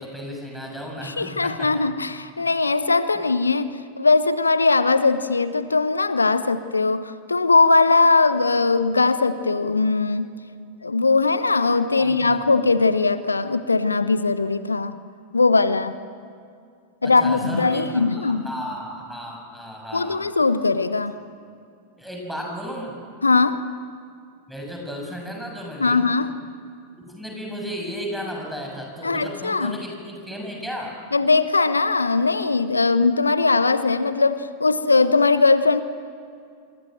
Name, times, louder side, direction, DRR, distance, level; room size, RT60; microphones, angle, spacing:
voice 1, 0.0-1.7 3.1-3.3 12.0-12.4 17.0-20.2 22.0-23.0 24.5-26.1 27.0-31.0, equal, ahead, 0 dB, 7.0 m, -34 dB
voice 2, 1.0-3.7 4.0-10.3 10.8-15.0 15.3-16.0 17.0-18.5 19.9-21.2 23.2-23.6 25.8-26.3 29.0-29.8 31.1-35.8, left 3 dB, 80° left, 13 dB, 0.9 m, -20 dB
28.0 x 24.0 x 7.7 m, 2.3 s
figure-of-eight pair, 90°, 0 cm